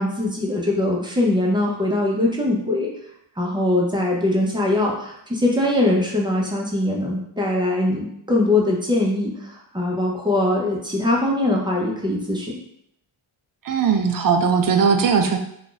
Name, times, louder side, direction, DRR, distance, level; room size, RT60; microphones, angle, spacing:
voice 1, 0.0-2.9 3.4-12.6, left 1 dB, 10° right, -3 dB, 0.8 m, -22 dB
voice 2, 13.6-15.4, right 6 dB, 45° right, 4 dB, 0.5 m, -19 dB
2.7 x 2.4 x 3.8 m, 0.74 s
cardioid pair, 80°, 50 cm